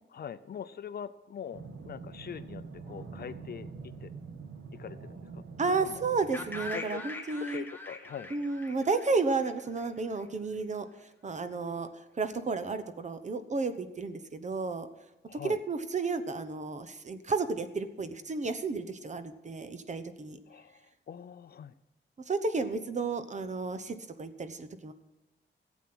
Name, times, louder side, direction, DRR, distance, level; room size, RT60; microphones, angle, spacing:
voice 1, 0.1-3.7 4.0-4.1 4.7-5.4 5.8-6.0 6.7-7.0 7.4-8.3 15.3-15.6 20.5-21.7, left 8 dB, 50° left, 13 dB, 0.5 m, -43 dB
sound 1, 1.5-6.7, right 4 dB, 85° right, 1.4 m, -45 dB
voice 2, 5.6-7.6 8.3-11.9 12.1-14.9 15.3-20.4 22.3-24.9, right 4 dB, 35° right, 10 dB, 0.9 m, -32 dB
sound 2, 6.3-10.2, left 2 dB, 10° left, 1.3 m, -42 dB
15.5 x 8.3 x 6.1 m, 1.0 s
wide cardioid pair, 140°, 20 cm